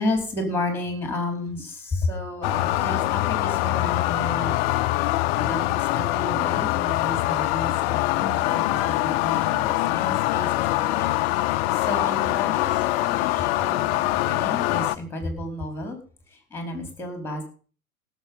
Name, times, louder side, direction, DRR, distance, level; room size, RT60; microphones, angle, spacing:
voice 1, 0.0-4.6 5.3-11.1 11.4-12.7 13.0-16.0 16.5-17.4, left 2 dB, 5° left, 4 dB, 4.6 m, -32 dB
sound 1, 2.4-15.0, left 17 dB, 45° left, 0.6 m, -24 dB
17.0 x 7.4 x 5.5 m, 0.39 s
figure-of-eight pair, 95°, 42 cm